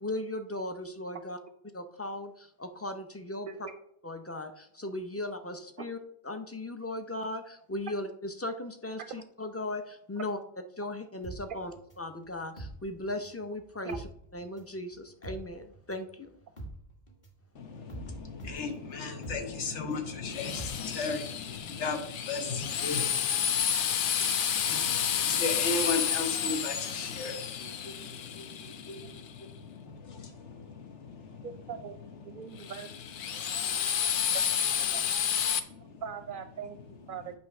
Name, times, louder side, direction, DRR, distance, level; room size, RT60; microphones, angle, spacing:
voice 1, 0.0-1.4 1.6-3.5 4.0-6.0 6.2-10.4 10.8-14.0 14.3-16.3, left 1 dB, 20° left, 7 dB, 0.4 m, -37 dB
sound 1, 11.2-13.5 13.7-21.4 21.7-21.8, right 1 dB, 40° left, 1.7 m, -45 dB
voice 2, 17.5-32.7 33.2-34.4 34.9-36.0, left 4 dB, 90° left, 5 dB, 1.4 m, -37 dB
Drill, 20.3-29.2 32.6-35.6, left 8 dB, 60° left, 0.6 m, -30 dB
voice 3, 31.4-32.9 34.8-35.1 36.0-37.3, right 7 dB, 55° right, 9 dB, 0.6 m, -41 dB
8.8 x 3.2 x 5.8 m, 0.71 s
omnidirectional pair, 1.2 m